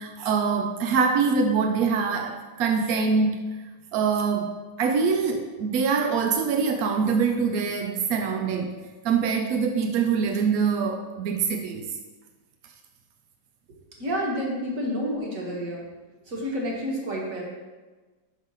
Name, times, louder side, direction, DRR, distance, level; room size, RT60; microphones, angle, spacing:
voice 1, 0.0-3.5 3.9-8.7 9.0-11.9, right 5 dB, 75° right, 4 dB, 0.8 m, -24 dB
voice 2, 14.0-15.9 16.2-17.4, equal, 45° right, -2 dB, 1.9 m, -29 dB
6.2 x 5.2 x 5.4 m, 1.3 s
omnidirectional pair, 2.1 m